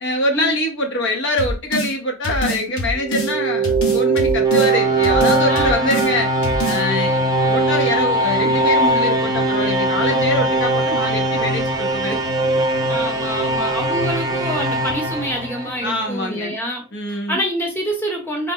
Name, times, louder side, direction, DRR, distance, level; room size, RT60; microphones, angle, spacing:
voice 1, 0.0-6.3 6.6-12.2 15.8-16.5 16.9-17.4, left 1 dB, 60° left, 0.8 m, -24 dB
sound 1, 1.4-1.9 2.2-3.3 3.6-4.7 5.0-6.1 6.4-6.8, equal, 90° left, 1.0 m, -24 dB
sound 2, 3.0-16.0, right 2 dB, 20° right, 0.5 m, -20 dB
voice 2, 12.9-16.8 17.1-18.5, equal, 10° left, 0.9 m, -26 dB
4.0 x 2.1 x 3.6 m
head